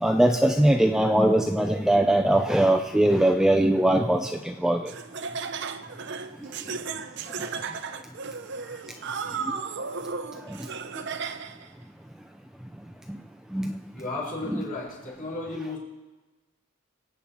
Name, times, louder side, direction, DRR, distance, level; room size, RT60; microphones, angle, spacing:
voice 1, 0.0-4.9 13.5-13.7 14.5-14.6, right 1 dB, 5° right, 5 dB, 0.4 m, -21 dB
Laughter, 4.9-11.7, right 5 dB, 55° right, 0.6 m, -35 dB
voice 2, 13.9-15.8, left 2 dB, 40° left, -4 dB, 4.9 m, -34 dB
24.5 x 8.5 x 4.3 m, 1.2 s
head